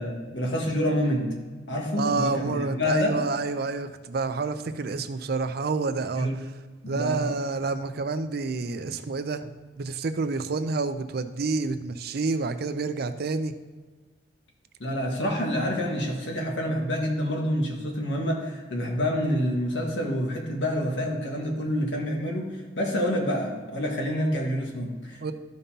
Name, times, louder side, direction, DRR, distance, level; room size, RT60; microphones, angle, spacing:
voice 1, 0.0-1.3 1.7-3.2 6.1-6.3 6.8-7.3 14.8-22.5 22.8-25.3, equal, 90° left, 0 dB, 1.6 m, -27 dB
voice 2, 2.0-6.3 6.9-9.5 9.8-13.5 25.2-25.3, right 4 dB, 60° right, 9 dB, 0.5 m, -28 dB
12.5 x 5.3 x 2.8 m, 1.4 s
head